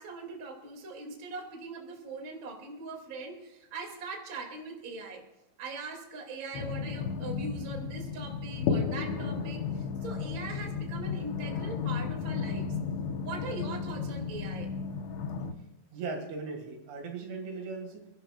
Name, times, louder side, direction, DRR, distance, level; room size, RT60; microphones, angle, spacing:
voice 1, 0.0-5.2 5.6-12.7 13.2-14.7, right 3 dB, 35° right, 1 dB, 2.4 m, -41 dB
sound 1, 6.5-15.5, left 6 dB, 75° left, 3.2 m, -33 dB
voice 2, 15.9-18.1, right 4 dB, 85° right, 3 dB, 4.5 m, -38 dB
29.5 x 11.5 x 2.4 m, 0.98 s
omnidirectional pair, 5.2 m